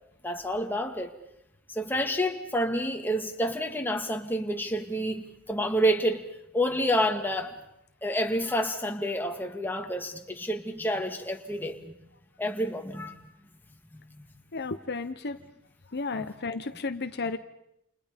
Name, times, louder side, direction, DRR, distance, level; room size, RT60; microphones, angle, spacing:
voice 1, 0.2-1.2 1.7-6.3 6.5-7.6 8.0-11.9 12.4-13.3 13.9-14.3 16.1-16.3, equal, 10° left, 3 dB, 2.2 m, -29 dB
voice 2, 14.5-15.4 15.9-17.4, left 3 dB, 50° left, 9 dB, 1.0 m, -33 dB
29.5 x 28.5 x 5.3 m, 0.79 s
head